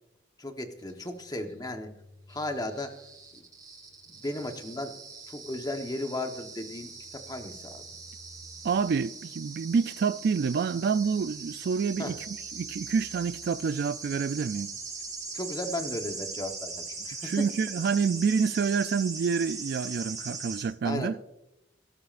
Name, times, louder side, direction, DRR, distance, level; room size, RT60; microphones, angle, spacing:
voice 1, 0.4-1.9 2.3-2.9 4.2-4.9 5.3-7.8 12.0-12.1 15.3-17.3 20.8-21.2, left 1 dB, 20° left, 1.1 m, -35 dB
sound 1, 0.9-20.6, right 4 dB, 20° right, 4.4 m, -41 dB
voice 2, 8.6-14.7 17.2-21.2, right 5 dB, 60° right, 0.3 m, -28 dB
18.5 x 12.5 x 2.5 m
head